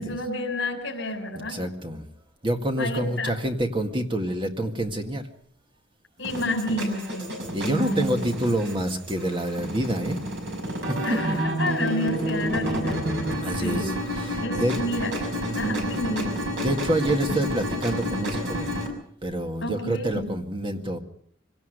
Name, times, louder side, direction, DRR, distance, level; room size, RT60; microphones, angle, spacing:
voice 1, 0.0-1.6 2.8-3.3 6.2-7.3 7.6-8.1 11.0-13.9 14.4-15.1 15.6-16.4 19.6-20.3, left 1 dB, 65° left, 3 dB, 4.6 m, -30 dB
voice 2, 1.4-2.1 2.4-5.2 7.5-10.2 10.9-11.4 13.4-14.8 15.5-15.8 16.6-18.7 19.2-21.0, right 1 dB, 25° right, 4 dB, 1.9 m, -27 dB
sound 1, 6.2-18.9, equal, 60° right, 6.0 m, -30 dB
24.5 x 17.5 x 6.6 m, 0.64 s
head